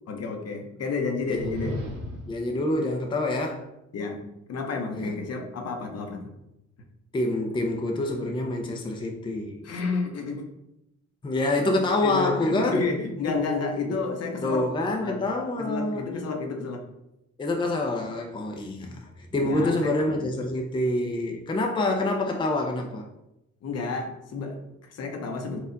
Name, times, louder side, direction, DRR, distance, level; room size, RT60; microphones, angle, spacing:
voice 1, 0.1-1.7 3.9-4.2 4.5-6.3 9.6-10.5 12.0-14.6 15.0-15.2 15.6-16.8 18.8-18.9 19.3-20.0 23.6-25.6, left 4 dB, 55° left, 3 dB, 0.8 m, -31 dB
sound 1, 1.2-2.4, equal, 50° right, 1.3 m, -35 dB
voice 2, 2.3-3.7 4.9-5.2 7.1-9.7 11.2-12.8 13.4-13.5 13.9-14.0 14.4-16.1 17.4-23.0, left 2 dB, 15° left, 2 dB, 0.6 m, -27 dB
4.3 x 2.4 x 3.9 m, 0.88 s
cardioid pair, 90°, 30 cm